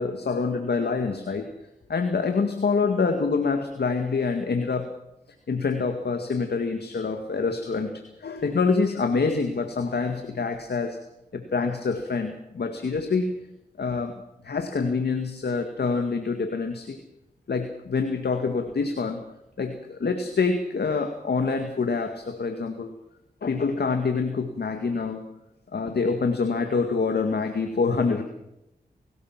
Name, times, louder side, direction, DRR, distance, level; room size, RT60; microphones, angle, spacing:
voice 1, 0.0-1.5 1.9-4.9 5.5-11.0 11.3-13.4 13.8-17.0 17.5-19.3 19.6-22.9 23.4-25.3 25.7-28.2, left 4 dB, 70° left, 6 dB, 2.0 m, -26 dB
24.5 x 18.0 x 6.0 m, 0.88 s
cardioid pair, 45°, 18 cm